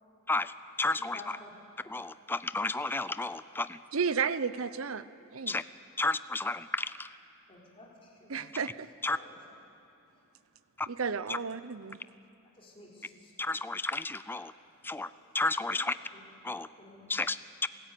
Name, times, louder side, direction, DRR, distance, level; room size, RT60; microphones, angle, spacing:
voice 1, 0.3-1.4 1.8-3.8 5.5-5.6 6.0-7.1 9.0-9.2 10.8-10.9 11.3-11.4 13.4-14.5 14.8-16.0 16.4-16.7 17.1-17.7, left 2 dB, 10° left, 14 dB, 0.4 m, -32 dB
voice 2, 1.0-1.5 7.5-8.5 9.1-9.4 12.6-13.3 15.7-15.8 16.1-16.2 16.8-17.1, left 3 dB, 25° left, -4 dB, 4.2 m, -51 dB
voice 3, 3.9-5.0 5.3-5.6 8.3-8.9 10.9-12.0, right 6 dB, 70° right, 14 dB, 0.7 m, -32 dB
29.5 x 13.5 x 9.2 m, 2.9 s
head